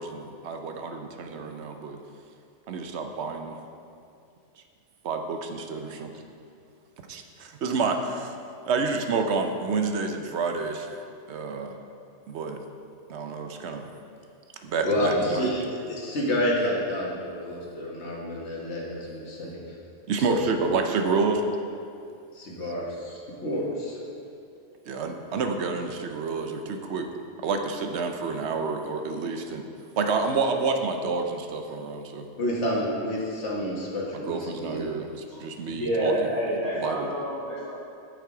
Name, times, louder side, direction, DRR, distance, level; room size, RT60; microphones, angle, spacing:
voice 1, 0.0-2.0 2.7-3.6 5.0-6.1 7.1-8.3 8.7-11.0 11.3-11.8 12.3-12.6 13.1-13.9 14.6-15.5 20.1-21.4 24.9-27.1 27.4-29.6 30.0-32.3 34.1-35.1 35.4-36.1 36.8-37.1, right 4 dB, 70° right, 5 dB, 1.0 m, -29 dB
voice 2, 14.8-15.6 15.9-19.6 20.3-20.5 22.3-24.0 32.4-34.9 35.6-35.7, left 1 dB, 70° left, -3 dB, 1.7 m, -29 dB
voice 3, 35.7-37.7, equal, 15° left, -10 dB, 2.3 m, -28 dB
7.4 x 6.8 x 4.9 m, 2.5 s
omnidirectional pair, 1.2 m